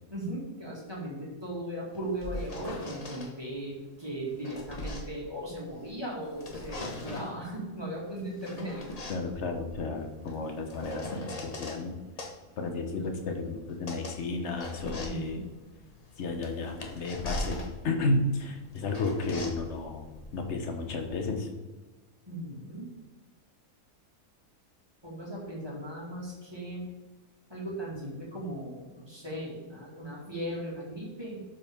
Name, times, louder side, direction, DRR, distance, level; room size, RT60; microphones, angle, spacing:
voice 1, 0.1-8.9 15.0-15.5 22.3-22.9 25.0-26.8 27.5-31.5, right 1 dB, 15° right, -5 dB, 2.1 m, -37 dB
sound 1, 1.9-3.3 4.1-5.9 6.3-7.4 8.2-11.8 12.2-21.3, left 1 dB, 30° left, 0.8 m, -41 dB
voice 2, 9.1-11.9 12.6-15.4 16.2-21.5, left 3 dB, 50° left, 4 dB, 1.2 m, -32 dB
11.5 x 5.2 x 3.6 m, 1.2 s
omnidirectional pair, 1.6 m